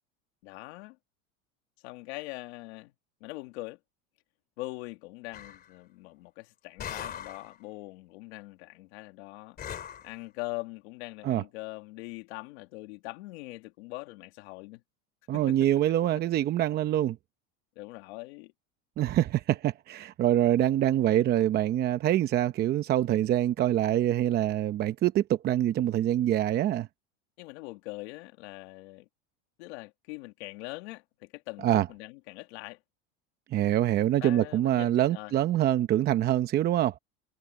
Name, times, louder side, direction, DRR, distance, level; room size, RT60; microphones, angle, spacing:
voice 1, 0.4-1.0 1.8-2.9 3.2-3.8 4.6-14.8 15.3-15.6 16.1-16.2 17.8-18.5 27.4-29.1 29.6-32.8 34.2-35.3, left 22 dB, 75° left, 1.9 m, -42 dB
sound 1, 5.3-5.7 6.8-7.5 9.6-10.1, left 9 dB, 30° left, 2.8 m, -40 dB
voice 2, 15.3-17.2 19.0-26.9 31.6-31.9 33.5-37.0, right 12 dB, 30° right, 0.7 m, -25 dB
supercardioid pair, 150°, 33 cm